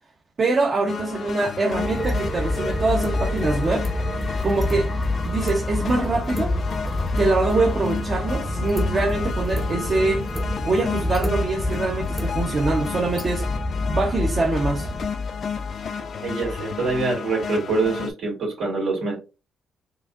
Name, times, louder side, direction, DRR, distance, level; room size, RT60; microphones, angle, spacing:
voice 1, 0.4-3.9 4.4-4.9 5.2-6.5 7.2-10.3 10.6-13.5 13.9-14.9, right 3 dB, 40° right, 0.8 m, -24 dB
sound 1, 0.9-18.1, left 6 dB, 55° left, 0.5 m, -31 dB
sound 2, 1.7-15.1, left 1 dB, ahead, 0.8 m, -27 dB
voice 2, 16.2-19.1, right 3 dB, 80° right, 2.3 m, -25 dB
4.9 x 2.6 x 2.4 m
cardioid pair, 90°, 0 cm